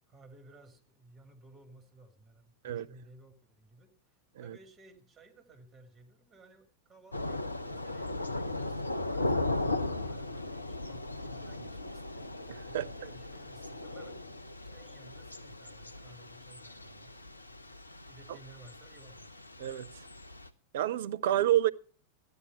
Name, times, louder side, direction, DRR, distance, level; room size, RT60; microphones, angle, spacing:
voice 1, 0.1-14.2 14.6-17.3 18.1-19.3, right 2 dB, 20° right, 2.8 m, -57 dB
Thunder / Rain, 7.1-20.5, left 2 dB, 85° left, 0.8 m, -37 dB
voice 2, 19.6-19.9 20.7-21.7, right 12 dB, 55° right, 0.6 m, -28 dB
13.5 x 9.6 x 5.5 m
figure-of-eight pair, 90°, 0 cm